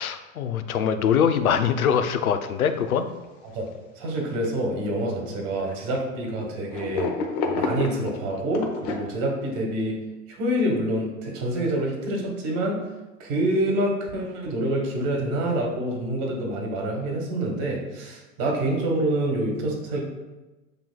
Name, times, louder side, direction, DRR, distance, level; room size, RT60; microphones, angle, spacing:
voice 1, 0.0-3.1, left 7 dB, 85° left, 10 dB, 0.5 m, -23 dB
Content warning, 2.7-2.8 3.1-3.2 4.1-4.7 5.6-6.0 6.7-9.0, left 4 dB, 45° left, 0.8 m, -29 dB
voice 2, 4.0-7.1 7.4-10.0 10.3-12.8 13.2-20.0, right 1 dB, 50° right, 0 dB, 1.4 m, -26 dB
8.0 x 2.8 x 2.3 m, 1.1 s
hypercardioid pair, 95°, 42 cm